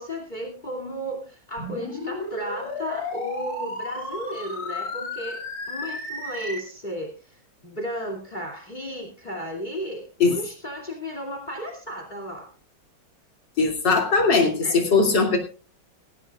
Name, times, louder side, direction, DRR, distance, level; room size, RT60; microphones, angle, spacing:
voice 1, 0.0-12.5 14.6-14.8, equal, 25° left, 4 dB, 2.8 m, -34 dB
sound 1, 1.6-6.6, left 2 dB, 50° left, 4.2 m, -33 dB
voice 2, 13.6-15.4, left 4 dB, 70° left, 3 dB, 3.4 m, -20 dB
19.5 x 15.5 x 2.4 m, 0.36 s
omnidirectional pair, 2.0 m